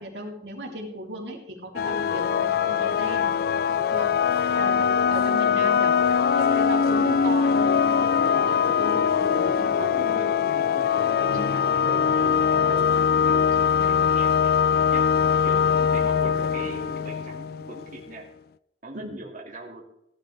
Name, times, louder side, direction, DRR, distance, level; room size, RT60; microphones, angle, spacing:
voice 1, 0.0-3.3 3.8-4.1 4.6-5.9 6.3-10.2 11.3-11.5 15.5-15.7 18.9-19.1, right 1 dB, 90° right, -1 dB, 3.6 m, -36 dB
sound 1, 1.8-18.1, left 7 dB, 60° left, 0.4 m, -22 dB
voice 2, 4.5-5.1 9.9-10.9 11.2-14.5 14.9-18.3 18.8-19.8, right 2 dB, 50° right, -2 dB, 2.3 m, -41 dB
17.0 x 12.0 x 3.4 m, 0.81 s
head